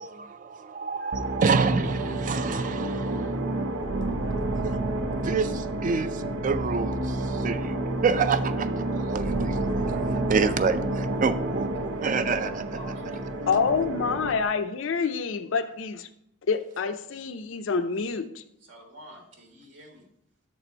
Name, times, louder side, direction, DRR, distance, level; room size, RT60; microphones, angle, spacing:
voice 1, 0.0-3.3 4.6-4.8 5.2-7.7 8.0-12.8, right 5 dB, 40° right, 0.4 m, -28 dB
sound 1, 1.1-14.4, right 1 dB, 85° right, 0.7 m, -29 dB
voice 2, 12.4-13.2 18.7-20.1, equal, 70° right, 1.3 m, -47 dB
voice 3, 13.5-16.1 16.5-18.4, left 5 dB, 70° left, 0.5 m, -27 dB
7.3 x 4.2 x 4.4 m
head